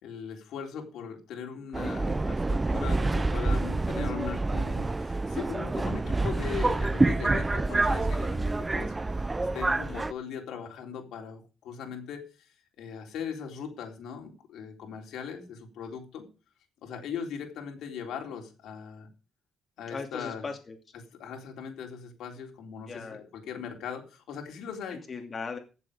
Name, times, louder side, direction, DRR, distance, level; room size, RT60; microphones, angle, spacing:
voice 1, 0.0-16.3 16.8-19.1 19.8-20.5 20.9-25.0, left 7 dB, 85° left, 2 dB, 3.6 m, -39 dB
Subway metro underground, 1.7-10.1, right 2 dB, 20° right, 0.6 m, -27 dB
voice 2, 19.9-20.8 22.9-23.2 24.9-25.6, left 4 dB, 40° left, 3 dB, 2.6 m, -38 dB
15.5 x 7.6 x 5.1 m, 0.34 s
cardioid pair, 90°, 0 cm